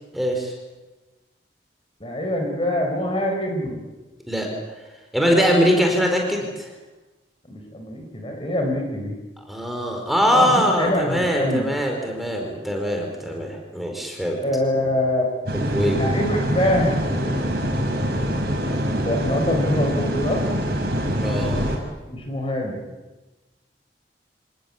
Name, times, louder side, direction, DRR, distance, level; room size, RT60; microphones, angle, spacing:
voice 1, 0.1-0.5 4.3-4.5 5.1-6.7 9.5-14.4 15.5-16.2 21.2-21.8, equal, ahead, 1 dB, 4.6 m, -22 dB
voice 2, 2.0-3.8 7.5-9.2 10.3-11.7 14.4-15.2 16.0-17.0 19.0-20.5 22.1-22.8, left 1 dB, 30° left, 3 dB, 4.4 m, -24 dB
sound 1, 15.5-21.8, equal, 60° right, 5.4 m, -24 dB
27.5 x 19.0 x 8.5 m, 1.2 s
head